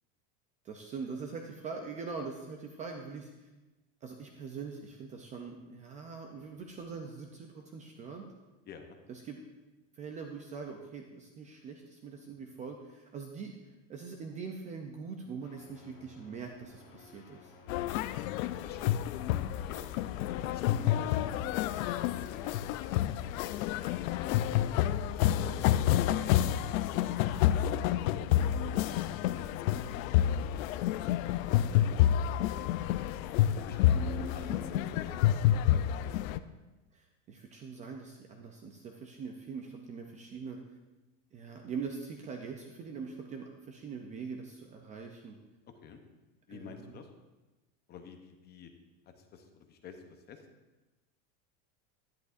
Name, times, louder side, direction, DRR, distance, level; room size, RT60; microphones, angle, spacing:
voice 1, 0.6-3.5 4.0-8.3 9.1-9.4 9.9-13.5 13.9-17.5 33.9-34.9 36.9-40.6 41.3-45.4 46.5-47.0, right 5 dB, 20° right, 3 dB, 0.3 m, -43 dB
voice 2, 8.7-9.0 18.6-18.9 19.6-19.8 20.4-21.7 22.1-24.6 25.2-28.2 28.6-30.9 31.7-32.7 33.4-36.1 45.8-46.0 46.5-47.1 47.9-48.7 49.2-50.4, left 6 dB, 25° left, 6 dB, 0.6 m, -49 dB
sound 1, 15.4-21.5, left 3 dB, 60° left, 1.4 m, -56 dB
sound 2, 17.7-36.4, left 12 dB, 80° left, 0.5 m, -29 dB
11.0 x 10.5 x 2.5 m, 1.1 s
supercardioid pair, 155°, 40 cm